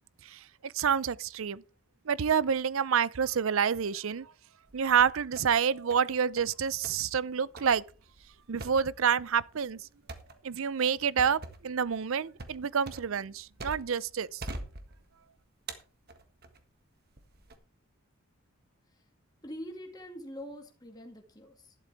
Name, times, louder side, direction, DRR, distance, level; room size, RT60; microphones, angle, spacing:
voice 1, 0.3-1.6 2.1-4.3 4.7-7.8 8.5-9.9 10.4-14.5, right 7 dB, 65° right, 0.5 m, -28 dB
sound 1, 4.7-5.6 5.9-6.6 6.8-7.0 7.6-14.0 14.4-15.2 15.7-16.6 17.2-17.6, right 2 dB, 45° right, 1.6 m, -44 dB
voice 2, 19.4-21.8, equal, 20° left, 2.1 m, -44 dB
11.5 x 11.5 x 3.5 m
head